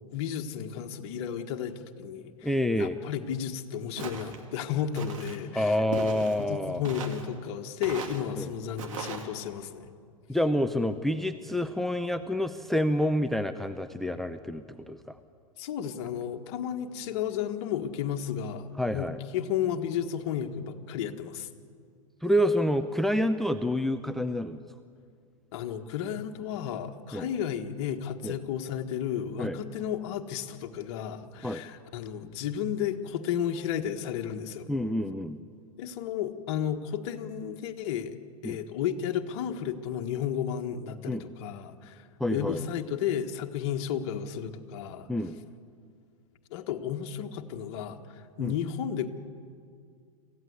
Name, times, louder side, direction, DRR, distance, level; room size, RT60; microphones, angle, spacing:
voice 1, 0.1-9.9 15.6-19.1 19.3-21.5 25.5-34.7 35.8-38.2 38.4-45.1 46.5-49.1, left 9 dB, 50° left, 5 dB, 1.7 m, -33 dB
voice 2, 2.4-3.0 5.5-6.8 8.4-8.5 10.3-15.2 18.8-19.2 22.2-24.6 27.1-27.3 28.2-28.4 29.4-29.6 31.4-31.6 34.7-35.4 38.4-38.6 41.1-41.2 42.2-42.7 45.1-45.4 48.4-48.5, equal, ahead, 10 dB, 0.7 m, -28 dB
Walk footsteps, 4.0-4.4 4.9-5.4 5.9-6.4 6.8-7.3 7.8-8.2 8.8-9.2, right 5 dB, 60° right, 2.8 m, -38 dB
27.0 x 15.5 x 8.2 m, 2.2 s
figure-of-eight pair, 100°, 19 cm